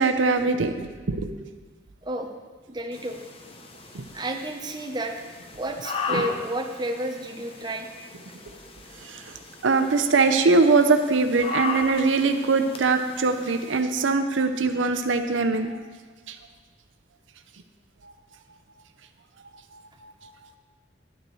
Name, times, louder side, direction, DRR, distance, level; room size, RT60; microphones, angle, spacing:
voice 1, 0.0-1.3 3.9-4.0 6.1-6.2 9.0-9.3 9.6-15.8 16.3-16.4 18.0-18.1 19.7-20.3, right 4 dB, 90° right, 7 dB, 0.6 m, -22 dB
voice 2, 2.7-3.2 4.1-5.3 5.6-7.9 8.3-8.4, right 1 dB, 25° right, 3 dB, 0.8 m, -31 dB
sound 1, 2.9-13.8, left 5 dB, 30° left, 0.7 m, -37 dB
11.5 x 9.4 x 3.2 m, 1.4 s
head